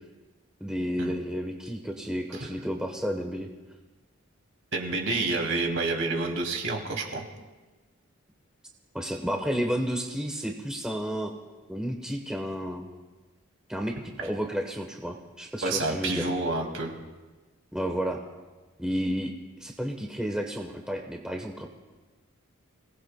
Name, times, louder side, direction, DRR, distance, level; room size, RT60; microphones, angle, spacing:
voice 1, 0.6-3.5 8.9-11.3 11.7-12.9 13.7-16.3 17.7-18.2 18.8-19.3 19.6-21.7, equal, 5° right, 2 dB, 1.0 m, -31 dB
voice 2, 4.7-7.3 15.6-16.9, right 3 dB, 65° right, 1 dB, 2.6 m, -28 dB
30.0 x 18.5 x 2.2 m, 1.2 s
head